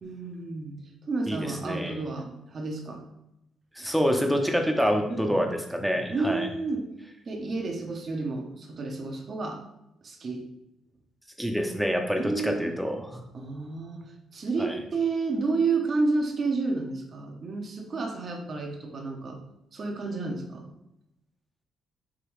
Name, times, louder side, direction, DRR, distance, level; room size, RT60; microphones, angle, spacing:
voice 1, 0.0-0.8 1.0-3.0 3.8-3.9 5.1-5.4 6.1-6.9 7.2-9.6 10.0-10.4 12.2-12.7 13.3-19.4 19.7-20.7, right 3 dB, 45° right, 2 dB, 0.8 m, -31 dB
voice 2, 1.3-2.0 3.8-6.5 11.4-13.2 14.6-14.8, equal, ahead, 3 dB, 0.7 m, -27 dB
4.9 x 3.0 x 3.1 m, 0.86 s
cardioid pair, 90°, 0 cm